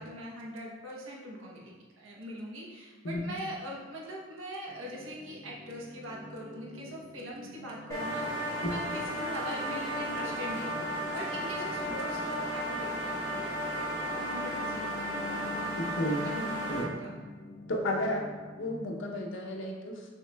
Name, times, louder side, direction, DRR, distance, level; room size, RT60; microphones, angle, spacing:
voice 1, 0.0-15.5 16.2-16.5 16.9-17.1, equal, 90° right, -3 dB, 0.9 m, -42 dB
sound 1, 4.7-18.9, left 3 dB, 40° left, 0.6 m, -48 dB
sound 2, 7.9-16.8, equal, 15° left, 1.2 m, -34 dB
voice 2, 15.8-16.2 16.7-16.9 17.7-18.2 18.6-20.1, left 1 dB, 75° left, 0 dB, 0.7 m, -32 dB
6.3 x 3.0 x 2.2 m, 1.4 s
head